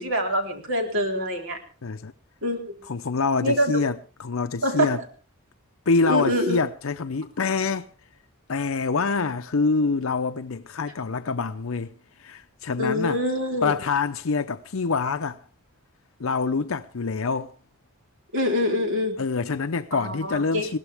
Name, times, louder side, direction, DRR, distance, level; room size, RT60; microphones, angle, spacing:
voice 1, 0.0-1.6 2.4-2.8 3.4-3.8 4.6-4.9 6.0-6.6 12.8-13.7 18.3-19.2 19.9-20.8, equal, 65° right, 4.0 m, -25 dB
voice 2, 1.8-2.1 2.8-5.0 5.9-7.9 8.5-11.9 12.2-13.2 13.6-15.4 16.2-17.5 19.2-20.8, left 4 dB, 70° left, 0.7 m, -26 dB
21.5 x 16.5 x 3.5 m
head